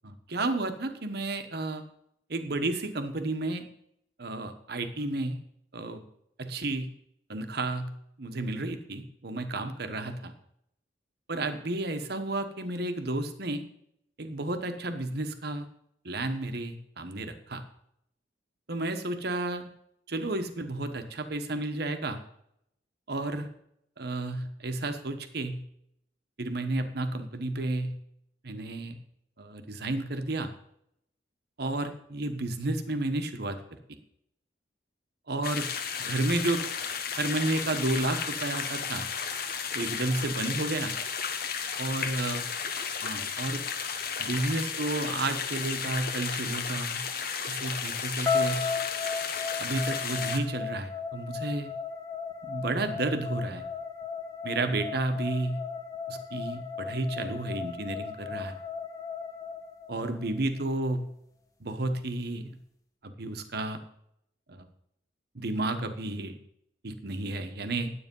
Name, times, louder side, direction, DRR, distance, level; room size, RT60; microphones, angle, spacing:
voice 1, 0.0-1.8 2.3-3.6 4.2-5.4 5.7-6.0 6.4-6.9 7.3-7.9 8.2-10.3 11.3-13.6 14.2-15.7 16.0-17.6 18.7-19.7 20.1-22.2 23.1-23.5 24.0-25.6 26.4-28.0 28.4-29.0 29.4-30.5 31.6-33.6 35.3-35.7 36.0-36.6 37.2-39.0 39.7-40.9 41.8-42.5 43.0-43.6 44.2-47.0 47.5-48.7 49.6-51.7 52.4-53.6 54.4-55.6 56.1-58.6 59.9-61.1 61.6-62.5 63.0-63.8 64.5-64.7 65.3-66.4 66.8-67.9, right 2 dB, 60° right, 7 dB, 1.2 m, -31 dB
sound 1, 35.4-50.4, left 6 dB, 55° left, 1.1 m, -33 dB
sound 2, 48.3-60.4, left 5 dB, 20° left, 1.4 m, -35 dB
10.0 x 8.7 x 5.4 m, 0.73 s
head